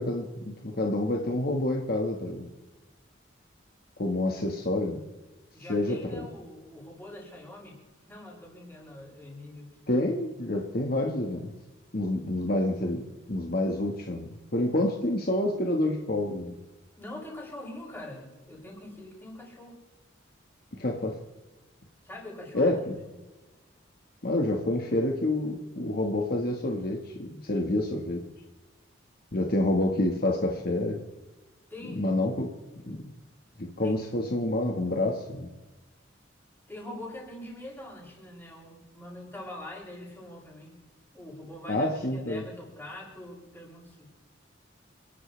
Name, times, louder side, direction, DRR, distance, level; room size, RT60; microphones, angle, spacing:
voice 1, 0.0-2.5 4.0-5.0 5.7-6.3 9.9-11.5 11.9-16.5 20.8-21.2 22.5-23.0 24.2-28.2 29.3-31.0 31.9-32.5 32.8-33.0 33.6-35.5 41.7-42.4, left 1 dB, 50° left, 1 dB, 1.7 m, -28 dB
voice 2, 5.5-7.8 8.1-10.1 17.0-19.8 22.0-23.2 31.7-32.0 33.8-34.0 36.7-40.8 41.1-44.1, left 1 dB, 10° left, -4 dB, 7.2 m, -44 dB
29.5 x 12.5 x 3.4 m, 1.1 s
head